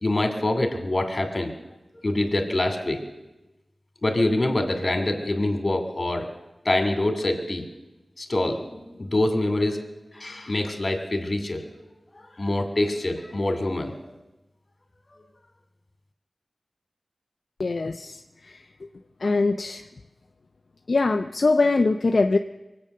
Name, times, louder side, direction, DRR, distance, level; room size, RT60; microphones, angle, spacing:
voice 1, 0.0-1.5 2.0-3.0 4.0-6.3 6.6-7.7 8.2-9.8 10.1-11.6 12.1-14.0, left 1 dB, 45° left, 6 dB, 2.5 m, -25 dB
voice 2, 17.6-18.2 19.2-19.8 20.9-22.4, left 3 dB, 65° left, 6 dB, 0.6 m, -22 dB
23.0 x 8.8 x 6.7 m, 1.0 s
wide cardioid pair, 60°, 0 cm